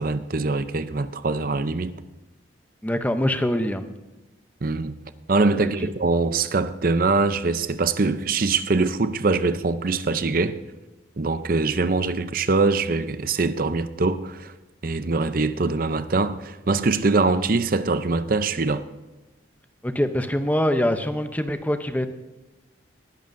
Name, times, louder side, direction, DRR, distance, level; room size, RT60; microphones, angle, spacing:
voice 1, 0.0-1.9 4.6-5.0 5.3-10.6 11.2-14.5 14.8-18.9, right 3 dB, 45° right, 0.6 m, -23 dB
voice 2, 2.8-3.8 5.6-5.7 19.8-22.1, left 1 dB, 10° left, 0.6 m, -24 dB
20.0 x 11.0 x 2.6 m
head